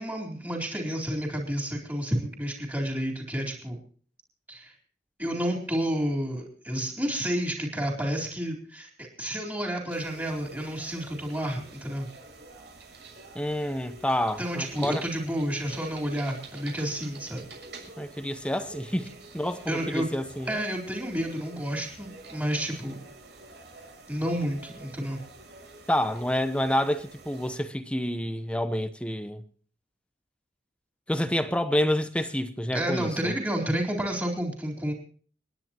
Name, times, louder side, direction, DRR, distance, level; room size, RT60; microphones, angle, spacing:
voice 1, 0.0-3.8 4.5-4.7 5.2-12.1 14.4-17.5 19.7-20.1 20.5-23.0 24.1-25.2 32.7-34.9, equal, 15° right, 3.7 m, -30 dB
sound 1, 9.9-27.6, right 3 dB, 75° right, 6.9 m, -48 dB
voice 2, 13.3-15.0 18.0-20.6 25.9-29.4 31.1-33.3, left 1 dB, 5° left, 0.8 m, -28 dB
30.0 x 10.5 x 3.0 m
head